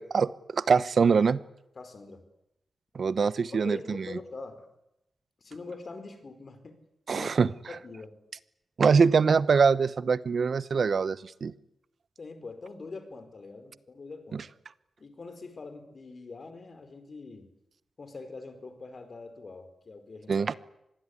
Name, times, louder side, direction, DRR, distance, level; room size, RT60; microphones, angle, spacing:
voice 1, 0.0-1.4 2.9-4.0 7.1-7.5 8.8-11.5 20.3-20.5, right 5 dB, 60° right, 16 dB, 1.0 m, -23 dB
voice 2, 1.7-2.2 3.5-4.7 5.4-6.8 7.1-7.3 7.7-8.1 12.2-14.5 15.0-17.5 18.0-20.6, left 3 dB, 50° left, 9 dB, 5.0 m, -43 dB
26.0 x 20.5 x 9.9 m, 0.85 s
cardioid pair, 85°, 0 cm